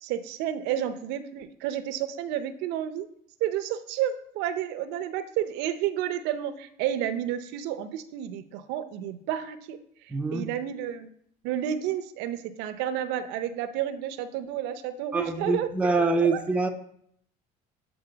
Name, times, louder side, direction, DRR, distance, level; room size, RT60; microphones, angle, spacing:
voice 1, 0.0-3.1 3.4-11.1 11.4-16.4, right 10 dB, 75° right, 10 dB, 0.6 m, -31 dB
voice 2, 10.1-10.5 15.1-16.7, right 3 dB, 5° right, 5 dB, 0.5 m, -25 dB
7.9 x 4.0 x 3.9 m, 0.66 s
cardioid pair, 130°, 18 cm